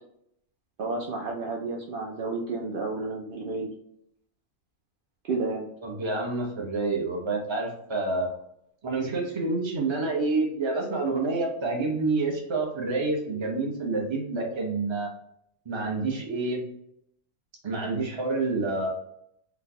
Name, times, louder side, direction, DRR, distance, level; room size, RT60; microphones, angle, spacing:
voice 1, 0.8-3.7 5.2-5.7, right 3 dB, 80° right, -2 dB, 0.4 m, -31 dB
voice 2, 5.8-8.3 8.8-15.1 15.7-16.6 17.6-18.9, right 3 dB, 30° right, 0 dB, 0.5 m, -28 dB
4.0 x 2.2 x 2.8 m, 0.74 s
omnidirectional pair, 1.5 m